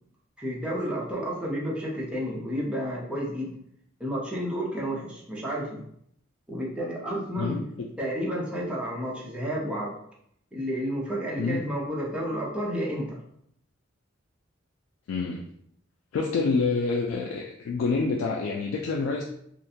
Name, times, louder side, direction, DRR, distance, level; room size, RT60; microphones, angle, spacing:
voice 1, 0.4-3.5 4.0-5.8 6.5-7.6 8.0-10.0 10.5-13.2, equal, 5° right, -4 dB, 0.6 m, -31 dB
voice 2, 15.1-15.4 16.1-19.2, left 4 dB, 75° left, -1 dB, 0.3 m, -27 dB
2.5 x 2.2 x 2.7 m, 0.71 s
head